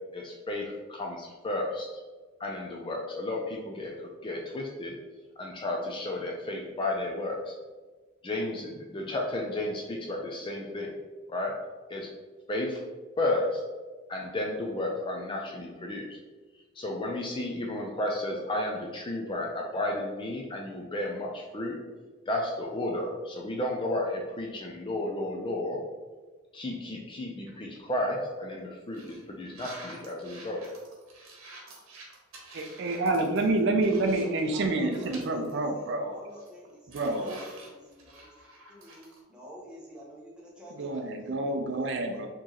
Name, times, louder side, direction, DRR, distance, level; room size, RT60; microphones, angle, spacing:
voice 1, 0.1-1.9 2.4-3.9 4.2-4.9 5.4-7.5 8.2-10.9 11.3-11.5 11.9-12.1 12.5-12.8 13.2-13.6 14.1-16.1 16.8-21.8 22.3-25.8 26.5-30.6, left 1 dB, 25° left, 0 dB, 0.3 m, -32 dB
sound 1, 27.5-27.8 28.3-28.4 28.9-34.5 34.8-35.5 35.9-36.0 36.3-39.2, right 2 dB, 75° right, 0.9 m, -49 dB
voice 2, 32.5-36.2 36.9-37.4 40.8-42.3, right 2 dB, 55° right, 5 dB, 0.4 m, -28 dB
voice 3, 33.4-42.3, equal, 5° right, -5 dB, 0.9 m, -49 dB
4.4 x 3.0 x 2.9 m, 1.3 s
head